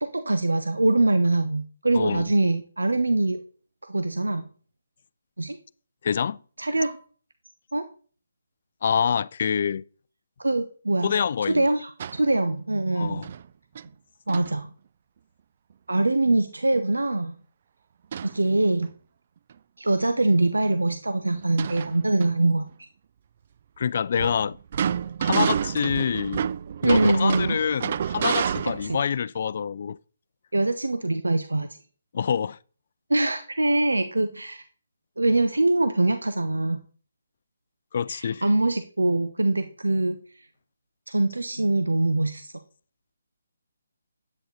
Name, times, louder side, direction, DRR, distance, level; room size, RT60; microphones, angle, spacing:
voice 1, 0.0-3.4 3.9-4.5 5.4-5.6 6.6-7.0 7.7-7.9 10.4-11.1 11.4-13.3 14.3-14.7 15.9-17.3 18.2-18.9 19.8-22.6 25.3-25.5 26.8-27.6 28.6-29.0 30.5-31.7 33.1-34.6 35.2-36.8 38.1-40.2 41.1-42.5, right 2 dB, 75° right, 1.0 m, -23 dB
voice 2, 6.0-6.4 8.8-9.8 11.0-11.6 13.0-13.3 23.8-24.6 25.2-26.5 26.8-30.0 32.1-32.6 37.9-38.4, left 7 dB, 45° left, 0.4 m, -26 dB
sound 1, 12.0-12.3 13.2-13.4 13.7-13.9 14.3-14.5 18.1-18.4 18.8-18.9 20.2-20.3 20.6-20.7 21.3-22.3 24.2-29.0, right 8 dB, 40° right, 0.4 m, -29 dB
10.5 x 8.8 x 4.1 m
figure-of-eight pair, 140°, 0 cm